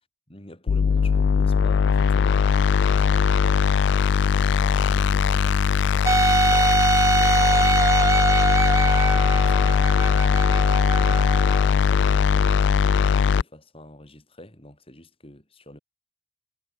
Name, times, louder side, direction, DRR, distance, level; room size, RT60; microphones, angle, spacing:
voice 1, 0.3-3.7 9.1-15.8, left 1 dB, 30° left, 7.2 m, -46 dB
sound 1, 0.7-13.4, left 6 dB, 65° left, 0.3 m, -20 dB
Wind instrument woodwind instrument, 6.1-11.7, right 4 dB, 15° right, 0.3 m, -23 dB
head